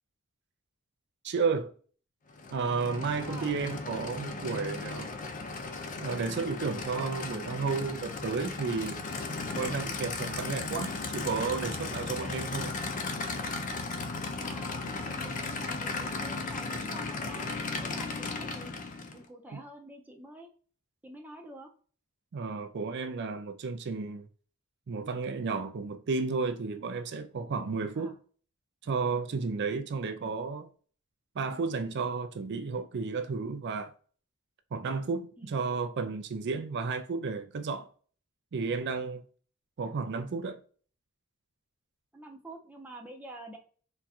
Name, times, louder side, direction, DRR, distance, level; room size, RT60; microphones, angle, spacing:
voice 1, 1.2-1.7 2.5-5.1 6.0-9.0 9.5-12.7 19.5-19.6 22.3-24.3 24.9-28.2 28.8-30.7 31.4-33.9 34.7-37.9 38.5-39.2 39.8-40.6, right 4 dB, 50° right, 0.4 m, -32 dB
Aircraft / Idling, 2.3-19.2, left 3 dB, 35° left, 0.5 m, -36 dB
voice 2, 14.3-17.5 17.8-18.7 19.1-20.5 21.0-21.7 28.0-28.2 30.2-30.3 35.4-35.6 42.1-43.6, right 1 dB, 10° right, 0.6 m, -47 dB
4.1 x 2.3 x 2.4 m
head